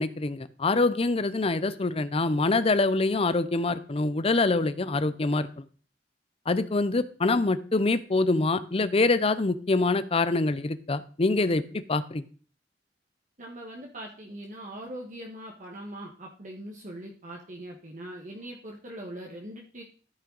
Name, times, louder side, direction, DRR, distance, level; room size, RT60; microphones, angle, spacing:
voice 1, 0.0-5.5 6.5-12.2, left 3 dB, 35° left, 13 dB, 0.6 m, -25 dB
voice 2, 13.4-19.8, right 1 dB, 45° right, -1 dB, 1.4 m, -41 dB
13.5 x 5.7 x 4.0 m, 0.42 s
head